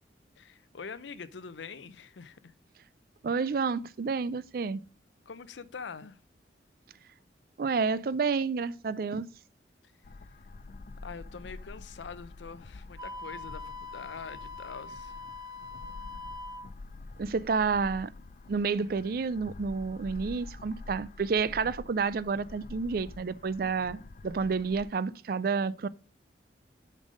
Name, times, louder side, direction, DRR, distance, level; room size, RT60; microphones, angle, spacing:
voice 1, 0.4-2.5 5.3-6.2 11.0-15.1, left 5 dB, 85° left, 0.6 m, -44 dB
voice 2, 3.2-4.8 7.6-9.3 17.2-18.1 18.5-24.0 24.2-25.9, right 5 dB, 55° right, 0.4 m, -29 dB
sound 1, 10.0-24.9, left 3 dB, 45° left, 0.4 m, -47 dB
Wind instrument woodwind instrument, 13.0-16.7, left 3 dB, 20° right, 0.7 m, -43 dB
7.5 x 5.3 x 5.1 m
head